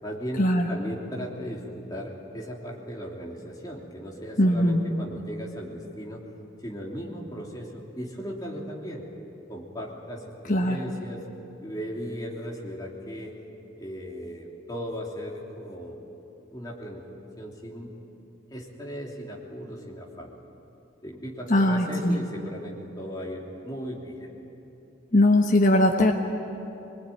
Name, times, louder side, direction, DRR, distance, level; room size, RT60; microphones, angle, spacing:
voice 1, 0.0-6.2 6.6-9.0 9.5-11.2 11.6-13.4 13.8-16.0 16.5-17.0 17.4-17.9 18.5-20.3 21.0-24.3, equal, 20° left, -2 dB, 3.2 m, -37 dB
voice 2, 4.4-4.8 10.5-10.8 21.5-22.2 25.1-26.1, left 1 dB, 40° left, 1 dB, 1.3 m, -20 dB
23.5 x 21.5 x 9.3 m, 2.9 s
head